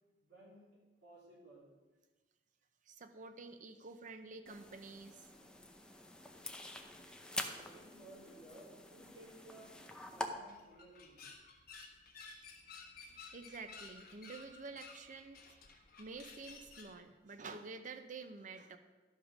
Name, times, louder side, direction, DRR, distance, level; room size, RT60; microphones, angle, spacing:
voice 1, 0.2-0.7 1.0-1.7 7.5-9.7 10.1-11.3, right 1 dB, 65° right, -8 dB, 3.7 m, -58 dB
voice 2, 2.9-5.3 13.3-15.4 16.0-18.8, right 4 dB, 45° right, 8 dB, 0.6 m, -49 dB
sound 1, 4.5-10.3, left 1 dB, 5° left, 0.7 m, -46 dB
sound 2, 10.3-17.0, left 4 dB, 60° left, 1.4 m, -55 dB
12.0 x 5.1 x 6.1 m, 1.2 s
head